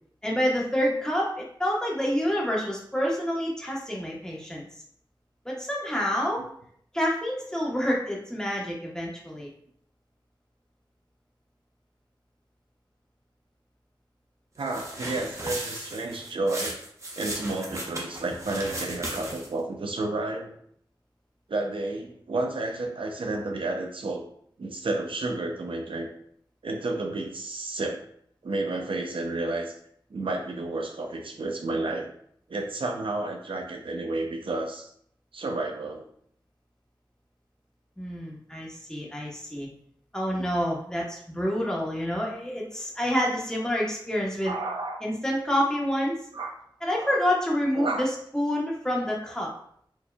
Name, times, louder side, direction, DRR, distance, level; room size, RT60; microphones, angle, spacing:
voice 1, 0.2-4.6 5.4-6.4 6.9-9.5 38.0-39.7 40.1-44.6 45.0-46.1 46.8-49.5, equal, 5° left, -4 dB, 1.0 m, -28 dB
sound 1, 14.6-19.6, right 1 dB, 35° right, 0.8 m, -36 dB
voice 2, 14.6-16.8 17.2-20.5 21.5-24.3 24.6-26.1 26.6-28.0 28.4-29.7 30.1-32.1 32.5-34.9 35.3-36.1 40.4-40.5 44.4-45.0 46.3-46.5 46.9-47.2 47.8-48.1, right 2 dB, 85° right, 2 dB, 0.6 m, -31 dB
4.5 x 2.8 x 2.2 m, 0.65 s
wide cardioid pair, 75°, 9 cm